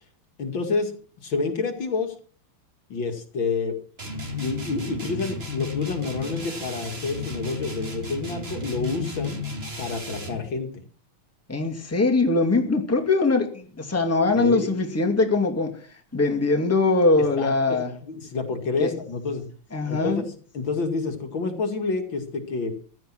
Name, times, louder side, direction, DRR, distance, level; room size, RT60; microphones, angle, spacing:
voice 1, 0.4-0.9 1.2-2.1 2.9-3.8 4.3-9.4 9.8-10.8 14.4-14.8 17.4-19.4 19.8-22.7, left 4 dB, 60° left, 5 dB, 2.8 m, -29 dB
sound 1, 4.0-10.5, left 3 dB, 25° right, 3.0 m, -33 dB
voice 2, 11.5-15.7 16.1-17.9 18.8-18.9 19.7-20.2, left 3 dB, 5° left, 2 dB, 2.3 m, -22 dB
15.0 x 12.0 x 6.1 m, 0.43 s
omnidirectional pair, 2.4 m